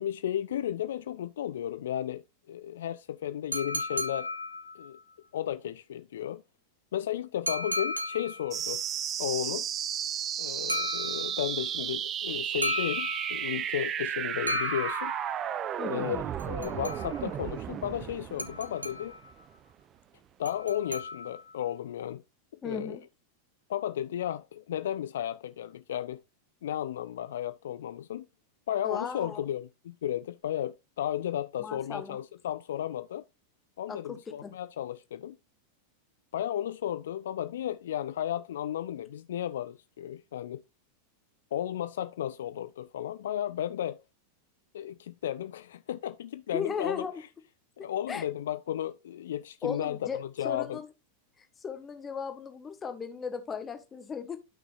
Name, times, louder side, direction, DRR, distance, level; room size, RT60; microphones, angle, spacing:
voice 1, 0.0-4.3 4.8-5.0 5.3-6.4 6.9-8.8 9.2-9.7 10.4-15.1 15.8-19.1 20.4-22.2 22.6-23.0 23.7-26.2 26.6-28.3 28.7-33.2 33.8-35.4 36.3-40.6 41.5-44.0 44.7-47.1 47.8-50.8, left 11 dB, 60° left, 0.3 m, -34 dB
sound 1, 3.5-5.0 7.5-8.6 10.7-11.6 12.6-13.6 14.5-15.5 16.4-17.4 18.4-19.3 20.4-21.5, left 1 dB, 85° right, 0.9 m, -35 dB
sound 2, 8.5-19.5, right 9 dB, 30° right, 0.6 m, -33 dB
voice 2, 22.6-23.0 28.8-29.4 31.6-32.2 33.9-34.5 46.5-47.2 48.1-48.2 49.6-50.9 51.4-54.4, left 6 dB, 20° left, 1.4 m, -36 dB
12.0 x 6.0 x 2.5 m
figure-of-eight pair, 90°, 0 cm